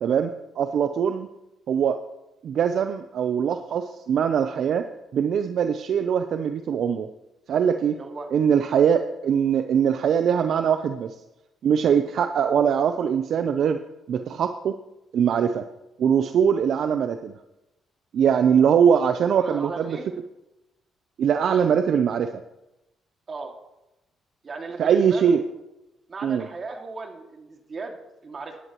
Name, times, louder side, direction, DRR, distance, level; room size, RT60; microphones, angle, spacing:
voice 1, 0.0-1.3 1.7-2.0 2.4-7.1 7.5-8.0 8.3-11.2 11.6-13.8 14.1-14.8 15.1-15.7 16.0-17.3 18.1-20.0 21.2-22.4 24.8-25.4 26.2-26.5, right 7 dB, 65° right, 8 dB, 0.6 m, -22 dB
voice 2, 7.9-8.3 18.9-19.0 19.4-20.1 23.3-23.5 24.4-25.4 26.1-28.6, right 4 dB, 40° right, 3 dB, 2.2 m, -36 dB
18.0 x 11.0 x 3.1 m, 0.94 s
cardioid pair, 90°, 0 cm